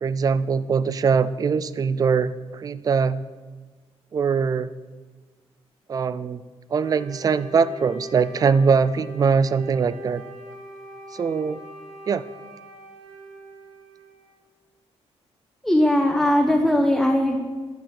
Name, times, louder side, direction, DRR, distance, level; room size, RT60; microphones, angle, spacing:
voice 1, 0.0-3.2 4.1-4.7 5.9-6.4 6.7-10.2 11.1-11.6 12.1-12.2, right 5 dB, 35° right, 16 dB, 0.4 m, -22 dB
Wind instrument woodwind instrument, 6.7-14.5, right 1 dB, 80° right, 2.7 m, -42 dB
voice 2, 15.6-17.4, left 1 dB, ahead, 1 dB, 0.8 m, -19 dB
10.5 x 5.7 x 6.4 m, 1.4 s
cardioid pair, 125°, 11 cm